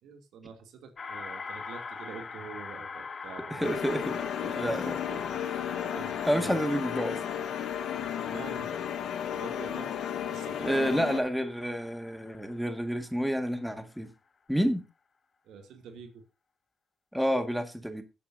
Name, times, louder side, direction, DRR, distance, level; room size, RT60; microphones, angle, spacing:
voice 1, 0.0-3.7 4.5-6.6 8.3-8.7 9.3-9.9 10.3-11.0 14.6-14.8 15.4-16.2, right 6 dB, 80° right, 5 dB, 2.6 m, -46 dB
sound 1, 1.0-13.7, left 5 dB, 40° left, 1.6 m, -44 dB
voice 2, 3.5-5.0 6.3-7.2 10.6-14.1 14.5-14.8 17.1-18.0, equal, ahead, 7 dB, 1.8 m, -29 dB
sound 2, 3.6-11.2, left 9 dB, 75° left, 1.3 m, -34 dB
17.5 x 8.6 x 2.7 m, 0.27 s
cardioid pair, 90°, 0 cm